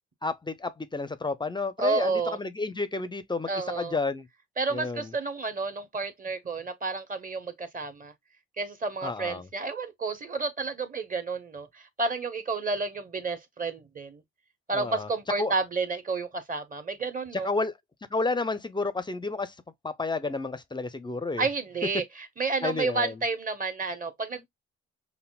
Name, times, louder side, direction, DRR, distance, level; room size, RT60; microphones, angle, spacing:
voice 1, 0.2-3.5 3.7-4.3 4.7-5.1 9.0-9.5 14.7-15.1 15.4-15.5 17.3-17.7 18.1-19.5 19.8-21.5 22.6-23.2, left 3 dB, 15° left, 0.4 m, -31 dB
voice 2, 1.8-2.4 3.5-4.0 4.6-8.1 8.6-14.2 14.7-17.5 21.4-22.0 22.4-24.5, right 3 dB, 30° right, 0.9 m, -30 dB
5.7 x 2.1 x 2.2 m
cardioid pair, 90°, 30 cm